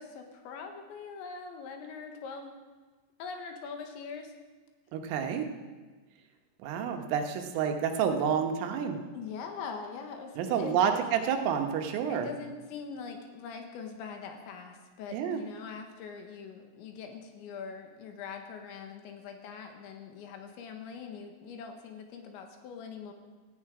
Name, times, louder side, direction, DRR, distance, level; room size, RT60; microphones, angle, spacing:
voice 1, 0.0-2.5 3.2-4.3 9.1-11.0 12.1-23.1, left 5 dB, 70° left, 4 dB, 3.5 m, -42 dB
voice 2, 4.9-5.5 6.6-9.0 10.4-12.3 15.1-15.4, right 7 dB, 85° right, 5 dB, 3.9 m, -29 dB
18.0 x 15.0 x 4.9 m, 1.3 s
omnidirectional pair, 5.7 m